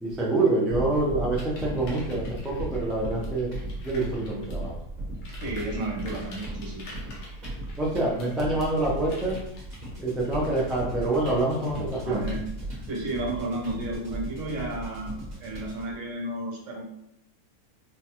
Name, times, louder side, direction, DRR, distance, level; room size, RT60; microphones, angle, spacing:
voice 1, 0.0-3.5 3.8-4.7 7.8-9.4 10.0-12.2, right 2 dB, ahead, -4 dB, 0.3 m, -26 dB
sound 1, 0.7-15.9, right 1 dB, 35° right, 1.1 m, -37 dB
sound 2, 1.3-4.7 5.1-12.3, left 1 dB, 85° left, 1.3 m, -47 dB
voice 2, 5.4-6.8 12.0-12.4 12.9-16.8, right 2 dB, 65° right, 0 dB, 1.1 m, -32 dB
4.3 x 2.3 x 2.9 m, 0.78 s
omnidirectional pair, 1.5 m